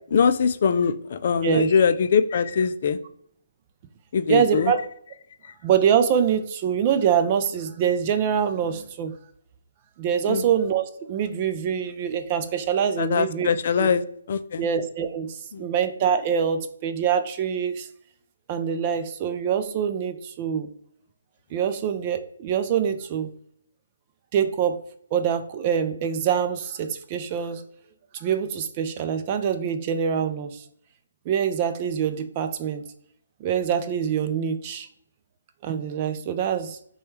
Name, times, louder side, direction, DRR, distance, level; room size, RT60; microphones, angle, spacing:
voice 1, 0.1-3.0 4.1-4.7 10.3-10.4 13.0-14.7 15.5-15.7, left 6 dB, 45° left, 11 dB, 0.4 m, -22 dB
voice 2, 4.3-4.8 5.6-9.1 10.0-13.5 13.8-13.9 14.6-17.9 18.5-20.7 21.5-23.3 24.3-24.8 25.1-27.6 28.1-30.6 31.3-32.8 33.4-34.9 35.6-36.8, right 8 dB, 25° right, 8 dB, 0.4 m, -24 dB
6.1 x 2.3 x 3.1 m, 0.66 s
hypercardioid pair, 155°, 0 cm